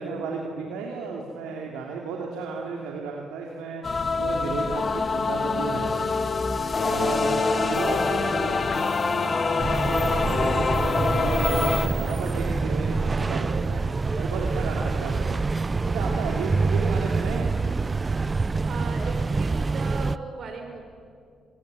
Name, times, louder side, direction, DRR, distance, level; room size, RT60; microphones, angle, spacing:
voice 1, 0.0-5.9 6.8-8.9 9.6-13.8 14.2-15.4 15.9-17.6, right 4 dB, 80° right, 0 dB, 2.7 m, -33 dB
sound 1, 3.8-11.9, left 4 dB, 45° left, 2.0 m, -25 dB
voice 2, 7.4-7.8 14.9-15.4 18.6-20.8, right 4 dB, 60° right, 4 dB, 6.0 m, -38 dB
sound 2, 9.6-20.2, right 4 dB, 35° right, 0.6 m, -26 dB
26.0 x 21.0 x 9.5 m, 2.2 s
hypercardioid pair, 50°, 0 cm